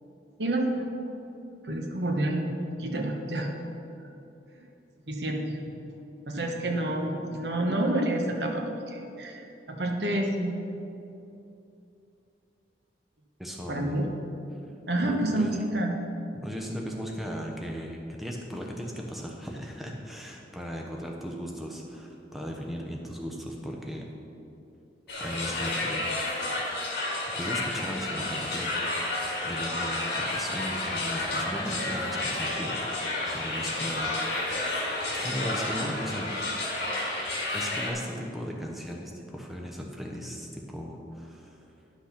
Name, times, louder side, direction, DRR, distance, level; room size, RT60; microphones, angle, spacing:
voice 1, 0.4-1.1 1.6-3.5 4.0-4.1 4.5-4.6 5.1-5.6 6.3-10.6 13.7-14.1 14.9-16.0, right 1 dB, 70° right, 2 dB, 1.2 m, -29 dB
voice 2, 13.4-14.0 14.5-14.6 15.0-15.5 16.4-24.1 25.2-26.7 27.3-28.7 29.4-34.7 35.1-36.4 37.5-41.7, equal, ahead, -1 dB, 0.8 m, -37 dB
sound 1, 25.1-37.9, left 2 dB, 60° left, 2.0 m, -31 dB
10.5 x 6.1 x 5.8 m, 2.8 s
head